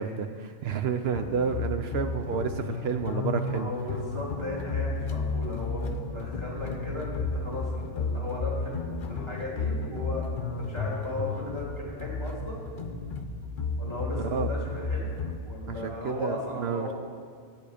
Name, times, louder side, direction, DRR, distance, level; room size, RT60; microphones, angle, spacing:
voice 1, 0.0-3.7 14.2-14.5 15.7-16.9, right 6 dB, 65° right, 7 dB, 0.8 m, -30 dB
sound 1, 1.1-15.4, left 3 dB, 55° left, 0.8 m, -33 dB
voice 2, 3.5-10.2 10.6-12.6 13.8-15.1 15.4-16.9, left 1 dB, 25° right, -5 dB, 2.6 m, -36 dB
11.0 x 8.7 x 5.0 m, 2.1 s
omnidirectional pair, 1.2 m